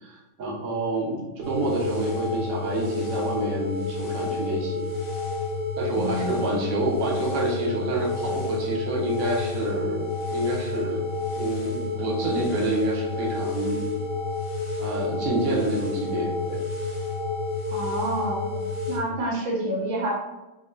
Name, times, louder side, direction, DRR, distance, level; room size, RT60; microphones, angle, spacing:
voice 1, 0.0-4.9 5.8-11.0 11.4-13.8 14.8-16.6, right 2 dB, 55° right, -2 dB, 1.2 m, -28 dB
sound 1, 1.4-19.0, left 3 dB, 50° left, 1.4 m, -30 dB
voice 2, 5.9-6.5 17.7-18.6 18.9-20.1, right 1 dB, 85° right, -2 dB, 1.8 m, -28 dB
4.0 x 2.8 x 4.3 m, 1.0 s
omnidirectional pair, 2.0 m